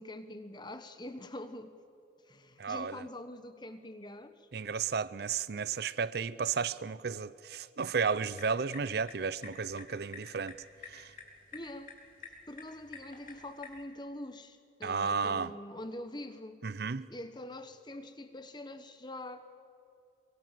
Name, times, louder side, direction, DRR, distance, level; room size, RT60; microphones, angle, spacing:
voice 1, 0.0-1.7 2.2-4.5 11.5-11.9 12.5-16.6 17.1-19.5, left 1 dB, 25° left, 1.2 m, -44 dB
voice 2, 2.6-3.0 4.5-10.6 10.9-11.1 14.8-15.5 16.6-17.1, right 5 dB, 55° right, 0.5 m, -33 dB
sound 1, 8.2-13.8, left 4 dB, 45° left, 4.1 m, -51 dB
24.0 x 23.5 x 7.6 m
head